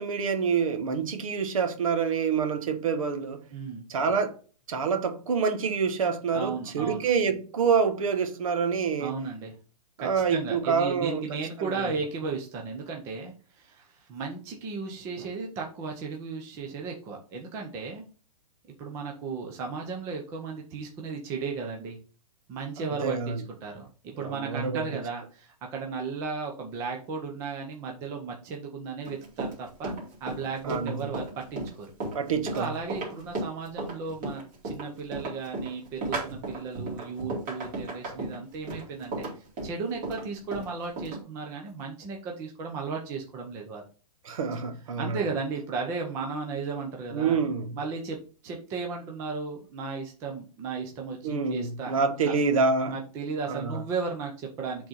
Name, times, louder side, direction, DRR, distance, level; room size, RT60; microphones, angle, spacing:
voice 1, 0.0-3.4 3.9-4.4 4.7-9.1 10.0-11.9 22.8-23.4 24.2-24.8 30.6-31.1 32.1-32.7 44.2-45.3 47.1-47.8 51.2-53.0 53.5-53.8, right 5 dB, 55° right, 1.3 m, -27 dB
voice 2, 3.5-3.8 6.3-7.1 9.0-9.5 10.0-18.0 18.8-22.0 22.5-23.3 23.6-29.9 30.2-31.9 32.5-43.8 45.0-47.4 47.7-48.2 48.4-52.3 52.9-54.9, right 4 dB, 15° right, 0.7 m, -35 dB
Run, 29.1-41.2, right 2 dB, 30° right, 2.6 m, -35 dB
7.4 x 3.9 x 4.2 m
hypercardioid pair, 170°, 20 cm